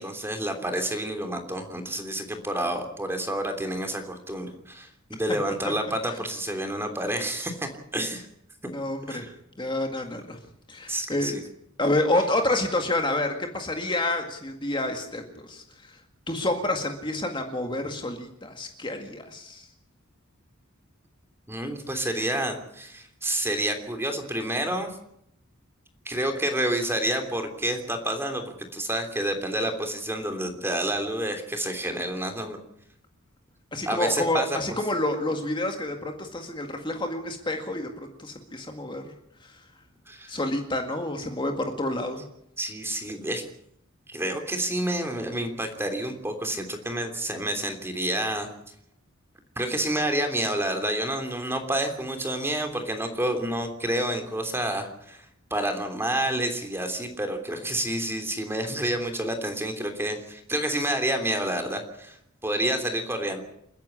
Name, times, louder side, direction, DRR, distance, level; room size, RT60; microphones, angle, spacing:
voice 1, 0.0-8.3 8.6-8.7 9.1-9.3 10.9-11.4 21.5-25.0 26.0-28.4 28.7-32.6 33.9-34.8 40.1-40.3 42.6-43.4 44.1-48.5 49.6-55.2 55.5-62.2 62.4-63.4, right 1 dB, 10° right, 6 dB, 3.2 m, -29 dB
voice 2, 8.7-9.2 9.6-10.4 10.7-11.4 11.8-16.0 16.3-19.7 33.7-39.0 40.3-42.2, left 1 dB, 25° left, 4 dB, 1.9 m, -28 dB
29.5 x 10.5 x 9.9 m, 0.75 s
head